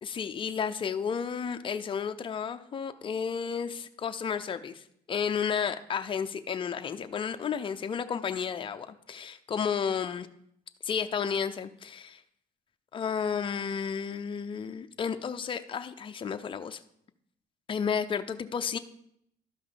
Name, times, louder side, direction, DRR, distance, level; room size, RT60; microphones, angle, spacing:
voice 1, 0.0-4.8 5.1-10.3 10.8-12.2 12.9-16.8 17.7-18.8, left 7 dB, 30° left, 8 dB, 0.6 m, -32 dB
12.5 x 5.4 x 3.9 m, 0.73 s
cardioid pair, 110°, 17 cm